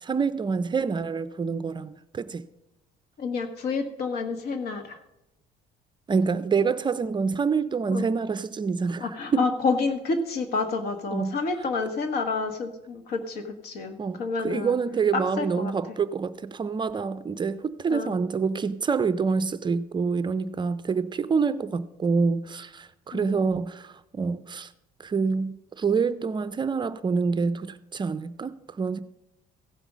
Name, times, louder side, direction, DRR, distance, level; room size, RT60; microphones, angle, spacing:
voice 1, 0.0-2.4 6.1-9.5 11.1-11.4 14.0-24.7 25.0-29.0, right 5 dB, 25° right, 0.5 m, -27 dB
voice 2, 3.2-5.0 7.9-8.1 9.0-14.8 15.1-15.7 17.9-18.1 23.1-23.4, left 4 dB, 70° left, 1.5 m, -29 dB
15.5 x 5.3 x 6.1 m
cardioid pair, 110°, 17 cm